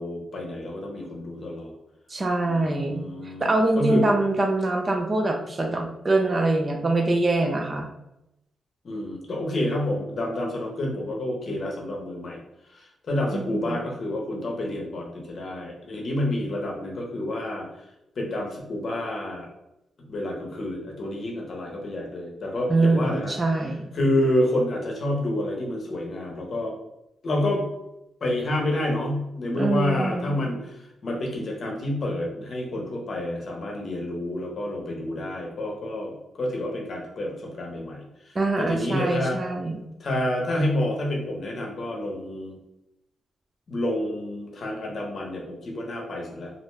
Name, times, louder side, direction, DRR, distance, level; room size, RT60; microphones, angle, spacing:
voice 1, 0.0-1.7 2.4-4.0 8.8-12.4 12.7-17.7 18.2-19.5 20.1-23.3 23.9-26.7 27.2-27.7 28.2-39.4 40.0-42.6 43.7-46.5, left 1 dB, 50° left, -1 dB, 0.7 m, -29 dB
voice 2, 2.1-3.0 3.4-7.9 13.3-13.8 22.7-23.9 29.6-30.5 38.4-39.8, right 2 dB, 30° right, 3 dB, 0.4 m, -24 dB
2.5 x 2.1 x 3.1 m, 0.88 s
cardioid pair, 105°, 0 cm